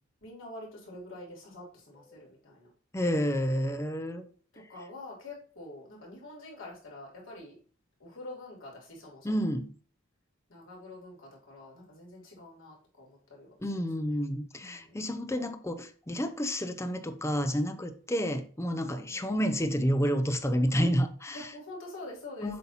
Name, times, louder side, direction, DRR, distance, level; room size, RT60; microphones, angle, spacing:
voice 1, 0.2-2.7 4.5-7.5 8.0-9.5 10.5-14.2 14.5-15.1 18.2-18.4 19.1-19.2 21.3-22.6, left 2 dB, 70° left, 3.1 m, -46 dB
voice 2, 2.9-4.3 9.2-9.7 13.6-21.5 22.4-22.6, equal, 15° left, 0.6 m, -30 dB
7.7 x 2.9 x 5.6 m
head